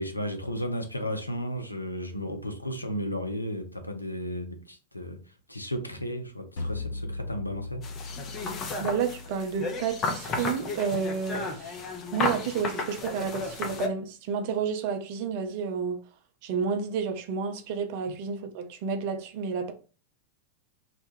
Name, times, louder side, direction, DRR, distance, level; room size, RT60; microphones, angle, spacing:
voice 1, 0.0-7.8, equal, 85° left, 0.4 m, -34 dB
sound 1, 6.6-11.6, left 3 dB, 65° left, 1.0 m, -39 dB
sound 2, 7.8-13.9, left 3 dB, 30° left, 0.5 m, -33 dB
voice 2, 8.8-11.8 12.1-16.0 16.4-19.7, right 6 dB, 50° right, 0.4 m, -30 dB
2.1 x 2.1 x 3.1 m
figure-of-eight pair, 90°, 0 cm